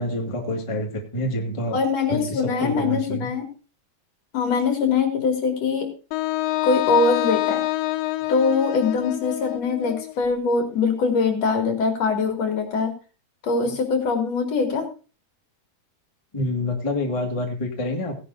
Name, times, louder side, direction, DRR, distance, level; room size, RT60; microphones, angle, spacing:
voice 1, 0.0-1.8 2.1-3.3 16.3-18.2, left 1 dB, 25° left, 1 dB, 0.6 m, -27 dB
voice 2, 1.7-3.5 4.3-5.9 6.6-7.6 8.3-12.9 13.4-14.8, left 4 dB, 45° left, 2 dB, 3.4 m, -22 dB
Wind instrument woodwind instrument, 6.1-10.1, left 17 dB, 85° left, 2.6 m, -26 dB
17.5 x 11.0 x 2.7 m, 0.34 s
omnidirectional pair, 4.4 m